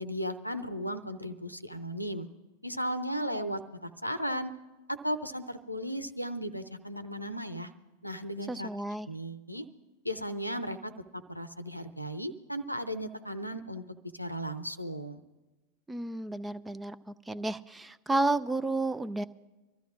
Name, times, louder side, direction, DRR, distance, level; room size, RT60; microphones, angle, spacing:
voice 1, 0.0-2.3 2.6-4.6 4.9-7.7 8.0-8.7 9.1-9.7 10.0-10.9 11.3-13.8 14.1-15.2, equal, 90° left, 10 dB, 0.6 m, -35 dB
voice 2, 8.5-9.1 15.9-19.2, right 2 dB, 10° right, 16 dB, 0.4 m, -32 dB
25.0 x 13.5 x 2.5 m, 1.1 s
figure-of-eight pair, 90°, 0 cm